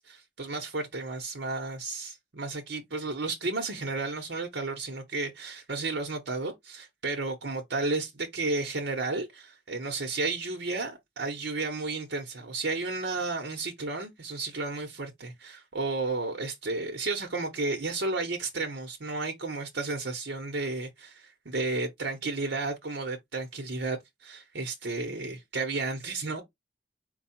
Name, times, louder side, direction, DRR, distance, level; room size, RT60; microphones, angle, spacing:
voice 1, 0.0-26.4, right 3 dB, 80° right, 1.0 m, -33 dB
4.6 x 2.3 x 4.3 m
head